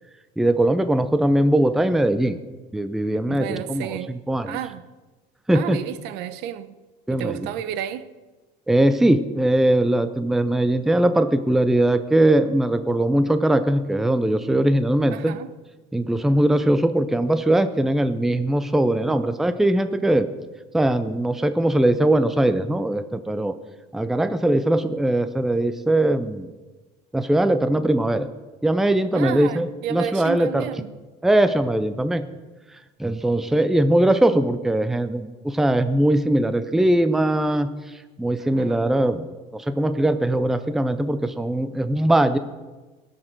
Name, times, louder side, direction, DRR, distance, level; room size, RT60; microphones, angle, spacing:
voice 1, 0.4-2.4 2.7-4.0 4.3-4.6 5.5-5.8 7.1-7.4 8.7-15.4 15.9-20.3 20.7-23.5 23.9-26.5 27.1-28.3 28.6-30.7 31.2-32.3 33.0-37.7 38.2-39.3 39.5-42.4, right 1 dB, ahead, 0.5 m, -20 dB
voice 2, 3.3-4.2 4.5-4.9 5.5-6.8 7.1-8.1 15.1-15.5 29.1-30.9 38.6-38.8, right 11 dB, 70° right, 0.7 m, -31 dB
20.0 x 6.6 x 4.5 m
cardioid pair, 140°, 18 cm